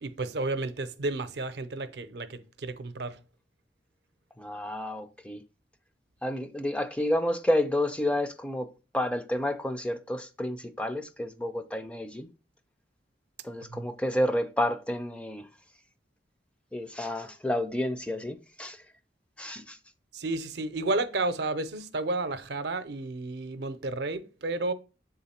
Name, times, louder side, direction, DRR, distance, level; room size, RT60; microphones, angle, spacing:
voice 1, 0.0-3.2 13.7-13.9 20.1-24.7, right 2 dB, 60° right, 0.6 m, -32 dB
voice 2, 4.4-5.4 6.2-8.7 8.9-12.3 13.4-15.5 16.7-18.8 19.4-19.8, left 1 dB, 5° left, 0.4 m, -30 dB
7.4 x 3.8 x 4.2 m
head